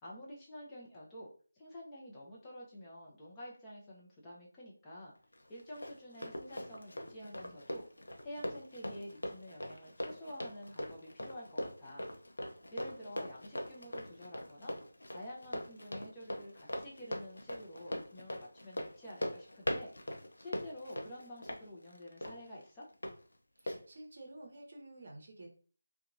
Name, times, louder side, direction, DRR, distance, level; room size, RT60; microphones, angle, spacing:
voice 1, 0.0-5.1 5.5-7.8 8.2-12.1 12.7-14.8 15.1-19.9 20.4-22.9, equal, 15° left, -5 dB, 0.6 m, -49 dB
Run, 5.3-23.1 23.7-23.8, left 1 dB, 70° left, 0.6 m, -41 dB
voice 2, 23.6-25.5, right 1 dB, 50° right, 2 dB, 0.7 m, -51 dB
2.7 x 2.2 x 2.6 m, 0.42 s
figure-of-eight pair, 160°, 0 cm